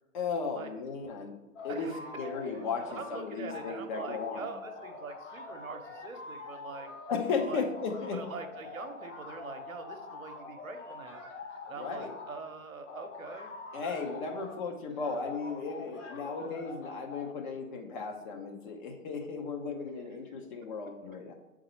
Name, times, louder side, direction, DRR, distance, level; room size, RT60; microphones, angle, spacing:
voice 1, 0.1-1.3 1.6-1.9 2.2-4.5 7.1-8.2 11.8-12.1 13.7-21.3, left 4 dB, 35° left, 2 dB, 0.9 m, -35 dB
sound 1, 1.5-3.2 3.5-12.4 12.8-14.6 15.0-17.3, left 3 dB, 60° left, 1.2 m, -45 dB
voice 2, 1.7-6.9 7.5-7.6 8.1-13.5 13.8-14.1 15.0-15.1, right 4 dB, 70° right, 6 dB, 0.9 m, -44 dB
7.9 x 3.8 x 3.2 m, 1.1 s
figure-of-eight pair, 120°, 42 cm